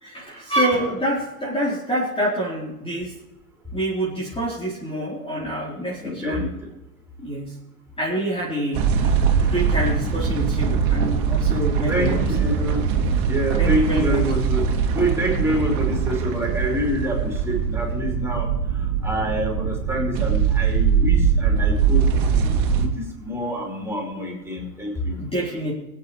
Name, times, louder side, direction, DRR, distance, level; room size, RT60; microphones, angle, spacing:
voice 1, 0.0-3.1 3.7-6.4 7.2-7.5 8.0-12.2 13.6-14.3 25.2-25.7, right 1 dB, 10° left, -6 dB, 4.0 m, -26 dB
voice 2, 6.0-6.5 11.9-12.8 13.2-18.5 19.0-25.2, equal, 5° right, -2 dB, 5.1 m, -27 dB
sound 1, 8.7-22.9, right 6 dB, 50° right, 2.6 m, -22 dB
23.0 x 9.5 x 3.3 m, 1.0 s
hypercardioid pair, 95°, 47 cm